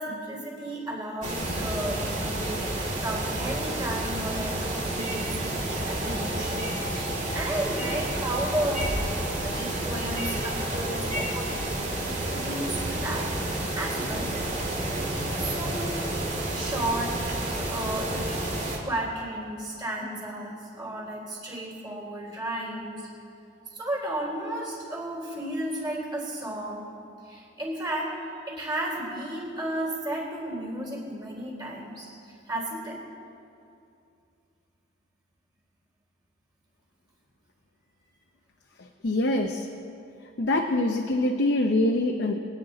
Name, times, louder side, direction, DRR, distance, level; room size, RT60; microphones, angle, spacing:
voice 1, 0.0-11.6 12.0-14.3 15.4-16.0 16.5-17.2 17.7-18.3 18.8-23.0 23.7-26.9 27.2-28.1 28.5-33.0, right 1 dB, 25° right, -2 dB, 3.5 m, -33 dB
sound 1, 1.2-18.8, right 1 dB, 40° right, 2.2 m, -30 dB
voice 2, 39.0-39.7 40.4-42.3, left 1 dB, 65° left, 2 dB, 0.7 m, -24 dB
23.0 x 9.5 x 3.8 m, 2.6 s
head